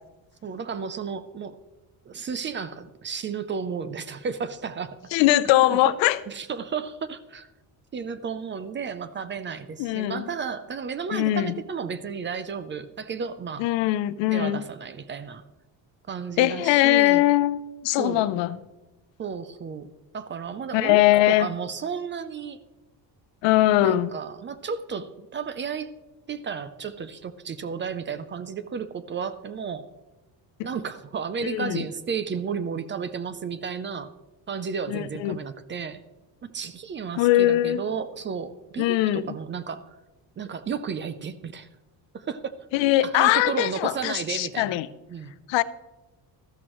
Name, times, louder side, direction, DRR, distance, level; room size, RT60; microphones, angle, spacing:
voice 1, 0.4-1.6 2.0-5.0 5.6-5.8 6.3-7.5 7.9-13.6 14.3-15.4 16.1-17.2 18.0-18.3 19.2-19.9 20.1-22.6 23.8-25.9 26.3-29.9 30.6-34.1 34.5-36.0 36.4-40.0 40.4-41.7 42.1-42.5 43.0-44.8 45.1-45.3, right 6 dB, 25° right, 0.4 m, -33 dB
voice 2, 5.1-6.2 9.8-10.3 11.1-11.5 13.6-14.6 16.4-18.6 20.7-21.5 23.4-24.1 31.5-31.9 34.9-35.4 37.2-37.8 38.8-39.3 42.7-44.9 45.5-45.6, left 15 dB, 80° left, 0.7 m, -21 dB
13.5 x 12.5 x 3.0 m
cardioid pair, 155°, 44 cm